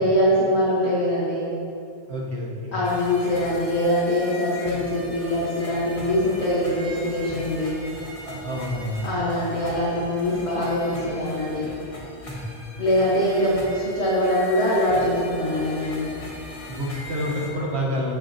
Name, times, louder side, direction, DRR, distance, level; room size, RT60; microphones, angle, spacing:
voice 1, 0.0-1.5 2.7-7.8 9.0-11.7 12.8-16.1, left 1 dB, 75° left, -7 dB, 1.7 m, -23 dB
voice 2, 2.1-2.8 8.2-9.2 12.3-12.6 16.7-18.1, equal, 75° right, -3 dB, 1.6 m, -29 dB
sound 1, 2.8-17.5, left 1 dB, 30° left, 1.3 m, -40 dB
13.5 x 5.8 x 2.9 m, 2.6 s
omnidirectional pair, 1.1 m